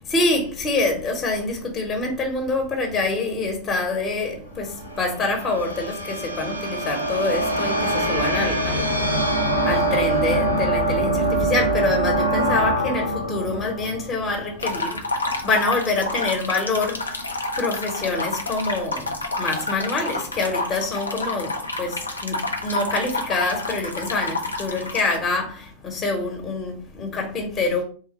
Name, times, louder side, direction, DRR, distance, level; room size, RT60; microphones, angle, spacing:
voice 1, 0.1-9.0 9.3-17.3 17.6-27.8, left 3 dB, 25° left, 1.0 m, -26 dB
sound 1, 4.6-14.9, right 1 dB, 90° right, 0.7 m, -24 dB
sound 2, 14.6-25.2, left 2 dB, 80° left, 0.6 m, -29 dB
3.5 x 2.2 x 4.2 m
figure-of-eight pair, 90°, 0 cm